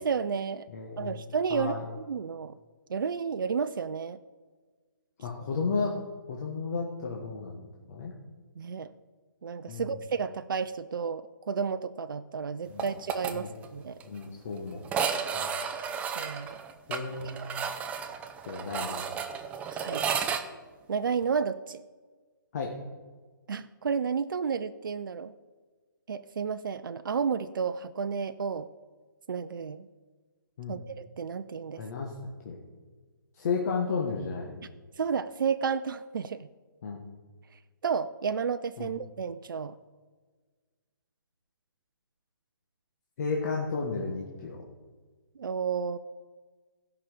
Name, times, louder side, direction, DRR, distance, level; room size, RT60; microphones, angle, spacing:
voice 1, 0.0-0.7 1.0-2.5 2.9-4.2 8.6-8.9 9.4-14.0 16.1-16.6 19.7-20.0 20.9-21.8 23.5-25.3 26.1-28.7 29.3-29.9 30.7-31.8 35.0-36.5 37.8-39.8 45.4-46.0, right 6 dB, 70° right, 11 dB, 0.5 m, -31 dB
voice 2, 0.7-1.2 1.5-1.8 5.2-6.0 6.3-8.1 9.7-10.0 12.7-12.8 13.3-13.5 14.0-14.9 15.3-15.5 16.9-17.5 18.4-19.1 22.5-22.7 30.6-30.8 31.8-32.1 32.4-32.6 33.3-34.6 36.8-37.0 38.8-38.9 43.2-44.6, left 4 dB, 45° left, -1 dB, 1.5 m, -33 dB
sound 1, 12.8-13.3 13.6-13.7 14.0-14.1 14.8-20.4, right 7 dB, 10° right, 0.5 m, -32 dB
16.0 x 5.8 x 5.0 m, 1.4 s
figure-of-eight pair, 145°, 11 cm